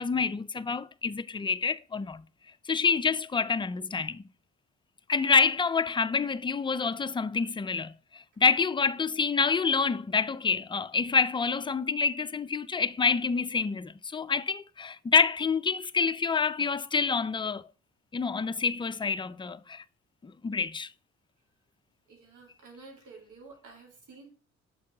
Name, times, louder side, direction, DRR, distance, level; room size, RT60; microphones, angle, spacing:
voice 1, 0.0-2.2 2.7-4.2 5.1-17.6 18.1-19.8 20.2-20.9, left 5 dB, 15° left, 0.4 m, -27 dB
voice 2, 22.1-24.3, right 3 dB, 80° right, 2.7 m, -51 dB
6.8 x 4.7 x 3.4 m
cardioid pair, 90°, 30 cm